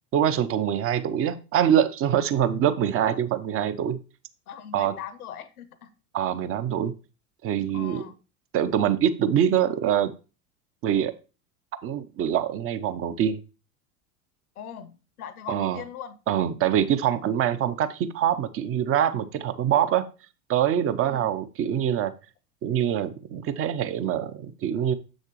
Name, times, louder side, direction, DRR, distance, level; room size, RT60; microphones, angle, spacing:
voice 1, 0.1-4.0 4.7-4.9 6.1-6.9 7.4-8.0 8.5-10.1 10.8-11.1 11.8-13.4 15.5-15.8 16.3-20.1 20.5-22.1 22.6-24.9, right 9 dB, 30° right, 0.7 m, -24 dB
voice 2, 4.5-5.9 7.7-8.2 14.6-16.2 17.2-17.3 21.0-21.3, left 8 dB, 75° left, 0.9 m, -40 dB
7.4 x 6.5 x 3.0 m
figure-of-eight pair, 80°, 44 cm